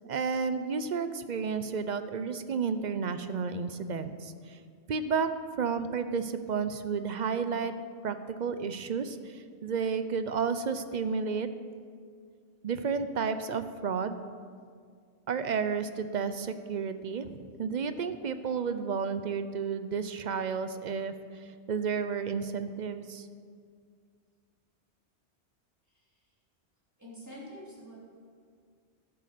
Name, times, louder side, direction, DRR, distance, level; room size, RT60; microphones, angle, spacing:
voice 1, 0.1-4.6 4.9-5.3 5.6-7.7 8.0-11.5 12.6-14.2 15.3-23.3, right 5 dB, 50° right, 11 dB, 0.6 m, -32 dB
voice 2, 25.9-26.3 27.0-27.9, equal, 15° right, -7 dB, 3.6 m, -47 dB
12.5 x 7.8 x 6.7 m, 2.1 s
omnidirectional pair, 1.1 m